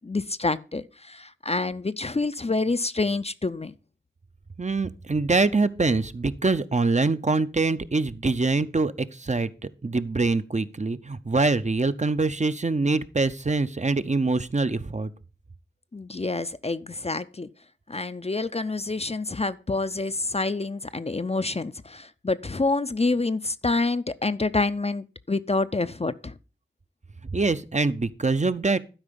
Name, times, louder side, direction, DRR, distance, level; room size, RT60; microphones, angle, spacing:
voice 1, 0.0-3.7 15.9-17.5 17.9-26.3, left 3 dB, 30° left, 0.5 m, -27 dB
voice 2, 4.6-9.5 9.8-15.1 27.3-28.8, right 3 dB, 35° right, 0.6 m, -24 dB
12.0 x 4.9 x 5.2 m
wide cardioid pair, 50°, 20 cm